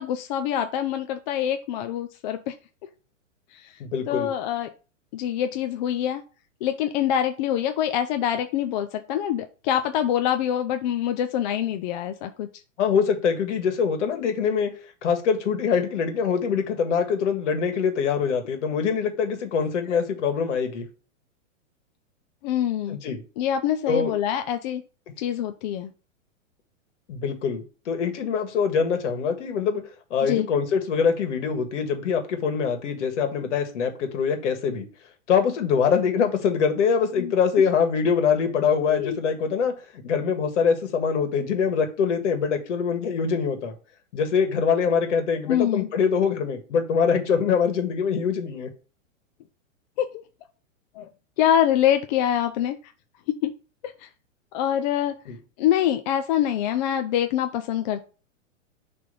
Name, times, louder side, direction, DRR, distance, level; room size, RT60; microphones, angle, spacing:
voice 1, 0.0-2.5 3.5-3.7 4.1-4.7 5.1-6.2 6.6-12.5 19.9-20.0 22.4-23.0 23.4-24.8 25.2-25.9 30.2-30.5 37.2-37.3 38.9-39.2 45.5-45.9 50.0-50.2 50.9-51.1 51.4-52.8 53.4-53.5 53.8-54.1 54.5-55.2 55.6-58.0, left 10 dB, 35° left, 7 dB, 0.5 m, -25 dB
voice 2, 3.8-4.3 12.8-14.7 15.0-20.8 22.9-23.2 23.9-24.1 27.1-29.8 30.1-34.9 35.3-39.7 40.0-43.7 44.1-48.7 55.3-55.4, left 6 dB, 65° left, 6 dB, 1.9 m, -24 dB
6.6 x 3.5 x 5.3 m, 0.36 s
hypercardioid pair, 135°, 39 cm